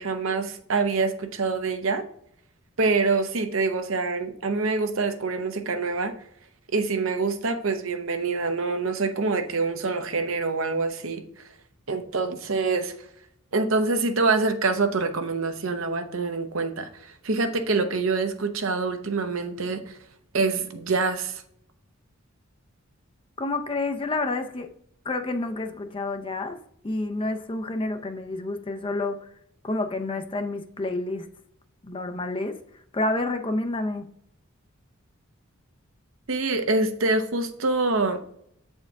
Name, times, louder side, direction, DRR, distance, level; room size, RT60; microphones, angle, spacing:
voice 1, 0.0-2.0 2.8-6.1 6.7-11.4 11.9-12.9 13.5-20.0 20.3-21.4 36.3-38.2, right 3 dB, 65° right, 0.8 m, -25 dB
voice 2, 23.4-24.7 25.0-26.6 26.8-29.3 29.6-31.3 31.8-32.6 32.9-34.0, left 2 dB, 25° left, 0.5 m, -29 dB
7.8 x 4.4 x 3.5 m
head